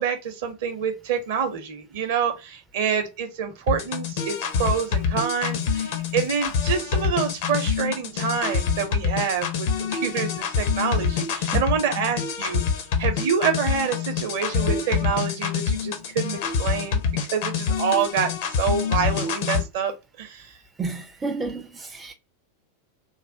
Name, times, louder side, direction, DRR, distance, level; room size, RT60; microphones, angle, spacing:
voice 1, 0.0-12.6 13.0-17.0 17.3-19.9 20.2-20.5, right 7 dB, 55° right, 0.7 m, -27 dB
sound 1, 3.7-19.6, left 6 dB, 50° left, 0.5 m, -26 dB
voice 2, 20.8-22.1, right 3 dB, 15° right, 0.4 m, -31 dB
3.2 x 2.1 x 2.6 m
figure-of-eight pair, 90°, 0 cm